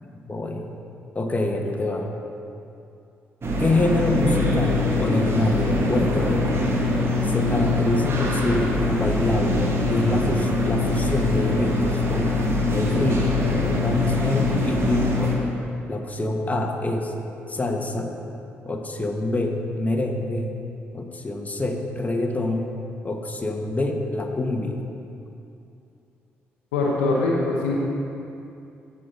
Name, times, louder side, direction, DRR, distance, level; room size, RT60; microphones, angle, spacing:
voice 1, 0.0-0.8 1.1-2.1 3.6-6.6 7.2-12.4 12.7-13.4 13.6-15.4 15.9-17.1 17.5-18.1 18.6-20.5 20.9-22.7 23.0-24.8, left 2 dB, 25° left, 3 dB, 1.3 m, -26 dB
sound 1, 3.4-15.4, left 2 dB, 45° right, 1.6 m, -23 dB
voice 2, 26.7-27.7, left 3 dB, 80° left, -2 dB, 0.9 m, -22 dB
15.5 x 5.5 x 4.0 m, 2.6 s
figure-of-eight pair, 40°, 6 cm